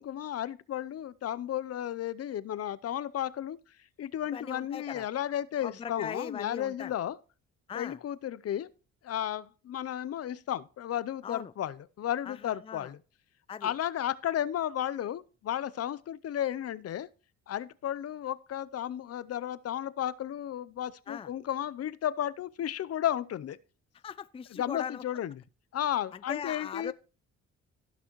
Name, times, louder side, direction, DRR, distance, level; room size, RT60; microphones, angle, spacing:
voice 1, 0.0-3.6 4.0-7.2 7.7-8.7 9.0-13.0 13.6-17.1 17.5-23.6 24.5-25.3 25.7-26.9, left 11 dB, 55° left, 0.6 m, -33 dB
voice 2, 4.3-5.1 5.6-6.9 7.7-8.0 11.2-11.5 12.3-12.9 13.5-13.7 21.1-21.3 24.0-25.0 26.1-26.9, left 7 dB, 20° left, 0.4 m, -40 dB
15.5 x 6.0 x 3.1 m
cardioid pair, 90°, 30 cm